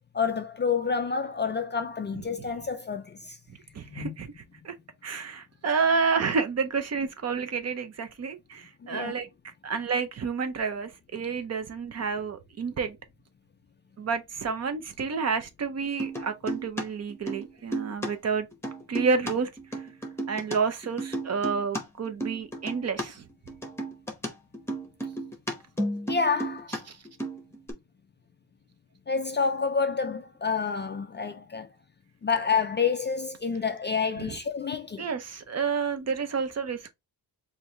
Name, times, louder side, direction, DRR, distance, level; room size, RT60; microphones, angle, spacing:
voice 1, 0.1-3.4 3.9-4.1 8.8-9.2 26.1-26.7 29.1-31.7 32.2-35.1, left 5 dB, 30° left, 0.3 m, -28 dB
voice 2, 3.7-4.3 4.6-4.7 5.0-9.3 9.6-13.0 14.0-18.5 18.9-19.5 20.3-23.3 26.9-27.0 34.2-34.4 35.0-36.9, right 5 dB, 40° right, 0.6 m, -29 dB
sound 1, 16.0-16.8 17.1-18.1 18.3-20.6 20.8-23.0 23.3-26.8 27.0-27.7, right 1 dB, 5° left, 0.9 m, -33 dB
4.6 x 2.7 x 3.2 m
wide cardioid pair, 170°, 40 cm